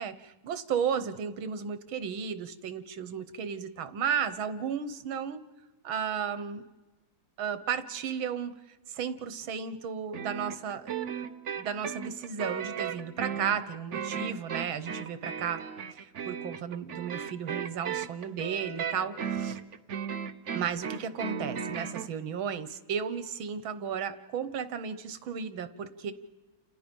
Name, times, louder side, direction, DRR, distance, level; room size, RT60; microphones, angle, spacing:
voice 1, 0.0-5.4 5.8-6.6 7.4-8.6 8.9-11.1 11.6-15.6 15.9-16.0 16.3-19.6 20.5-26.1, right 7 dB, 85° right, 12 dB, 2.0 m, -34 dB
sound 1, 10.1-22.1, right 7 dB, 45° right, 1.1 m, -36 dB
29.5 x 29.0 x 5.4 m, 1.2 s
omnidirectional pair, 2.2 m